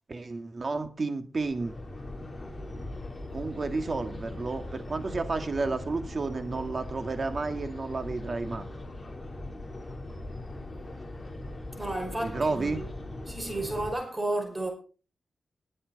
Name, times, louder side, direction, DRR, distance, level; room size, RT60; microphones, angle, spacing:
voice 1, 0.1-1.7 3.3-8.7 12.2-12.8, right 3 dB, 45° right, 2.1 m, -31 dB
sound 1, 1.4-13.9, left 1 dB, 25° left, 3.7 m, -40 dB
voice 2, 11.8-12.9 13.3-14.7, right 1 dB, 20° right, 5.4 m, -32 dB
20.5 x 7.8 x 4.1 m
cardioid pair, 85°, 0 cm